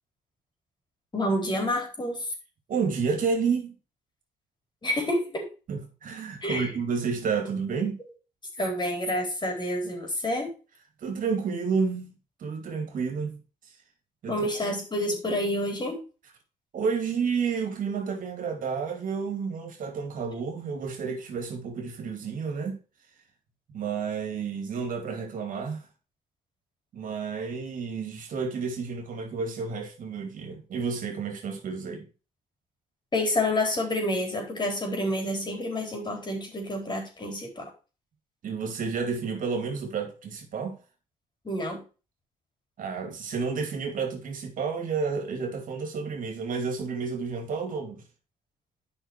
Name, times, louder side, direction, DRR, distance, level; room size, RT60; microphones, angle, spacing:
voice 1, 1.1-2.3 4.8-5.5 6.4-6.7 8.6-10.5 14.3-16.0 33.1-37.7 41.4-41.8, left 1 dB, 30° left, 4.1 m, -28 dB
voice 2, 2.7-3.7 5.7-8.0 11.0-12.1 12.4-13.4 14.2-14.5 16.7-22.8 23.7-25.9 26.9-32.1 38.4-40.8 42.8-48.0, right 5 dB, 65° right, 2.5 m, -30 dB
9.0 x 5.7 x 4.5 m
cardioid pair, 80°, 15 cm